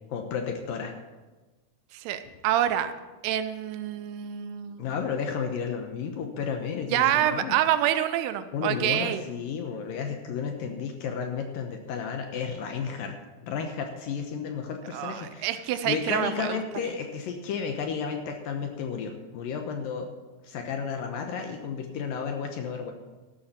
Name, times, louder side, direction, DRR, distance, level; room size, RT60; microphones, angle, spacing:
voice 1, 0.1-0.9 4.8-7.5 8.5-13.1 13.4-20.1 20.4-22.9, left 6 dB, 70° left, 4 dB, 2.3 m, -32 dB
voice 2, 1.9-2.9 3.2-4.9 6.9-9.2 14.9-16.6, right 11 dB, 80° right, 11 dB, 2.6 m, -27 dB
14.5 x 12.0 x 4.3 m, 1.2 s
omnidirectional pair, 4.8 m